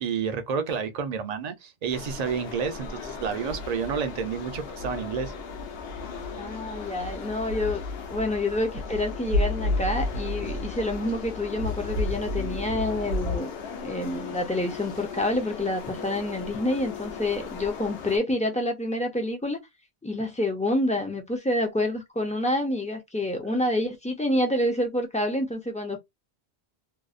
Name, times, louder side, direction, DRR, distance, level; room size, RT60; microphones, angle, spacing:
voice 1, 0.0-5.3 23.4-23.6, right 6 dB, 50° right, 0.5 m, -30 dB
sound 1, 1.9-18.2, left 6 dB, 70° left, 0.9 m, -38 dB
sound 2, 3.5-13.4, left 1 dB, 75° right, 0.9 m, -32 dB
voice 2, 6.4-7.8 8.1-13.5 13.8-19.6 20.0-26.0, left 1 dB, 10° left, 0.3 m, -28 dB
2.6 x 2.0 x 2.4 m
omnidirectional pair, 1.1 m